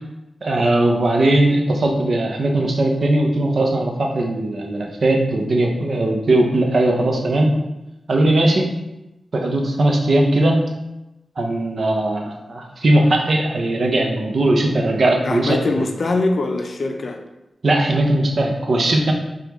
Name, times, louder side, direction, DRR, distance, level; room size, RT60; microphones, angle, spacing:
voice 1, 0.4-7.6 8.1-8.7 9.3-10.6 11.4-15.6 17.6-19.1, right 1 dB, 65° right, 2 dB, 0.6 m, -18 dB
voice 2, 15.2-17.2, left 2 dB, 60° left, 4 dB, 0.5 m, -22 dB
5.0 x 2.3 x 3.0 m, 0.94 s
cardioid pair, 60°, 0 cm